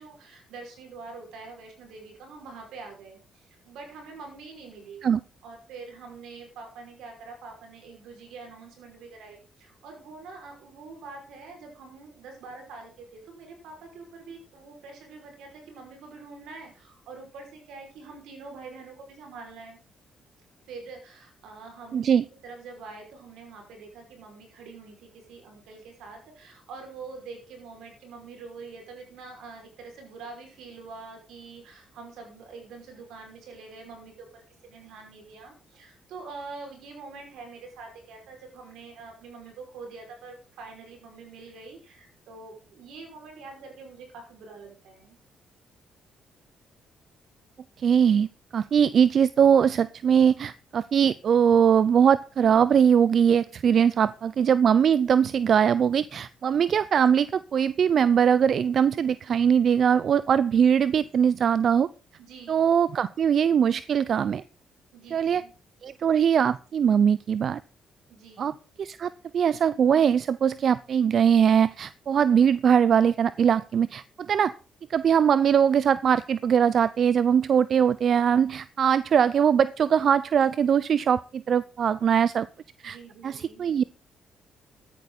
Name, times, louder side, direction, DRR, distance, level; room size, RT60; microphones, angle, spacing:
voice 1, 0.0-5.0 5.4-19.8 20.7-22.1 22.4-45.2 53.7-54.0 62.2-62.7 64.9-65.5 68.1-68.5 82.8-83.6, right 4 dB, 85° right, 3 dB, 5.6 m, -45 dB
voice 2, 21.9-22.2 47.8-48.3 48.5-61.9 62.5-64.4 65.1-65.4 65.8-67.6 68.4-68.5 68.8-74.5 74.9-82.5 82.8-83.0 83.2-83.8, right 8 dB, 55° right, 17 dB, 0.5 m, -21 dB
14.0 x 10.5 x 4.1 m, 0.34 s
cardioid pair, 90°, 0 cm